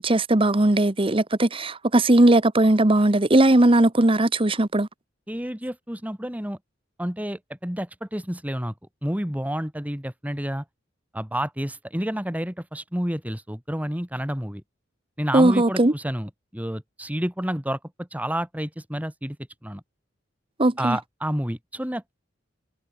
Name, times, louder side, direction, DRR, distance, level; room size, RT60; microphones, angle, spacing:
voice 1, 0.0-4.9 15.3-15.9 20.6-21.0, right 1 dB, 30° right, 1.1 m, -18 dB
voice 2, 5.3-6.6 7.0-8.7 9.0-10.6 11.1-14.6 15.2-19.4 19.6-19.8 20.8-22.1, equal, 10° right, 2.5 m, -29 dB
head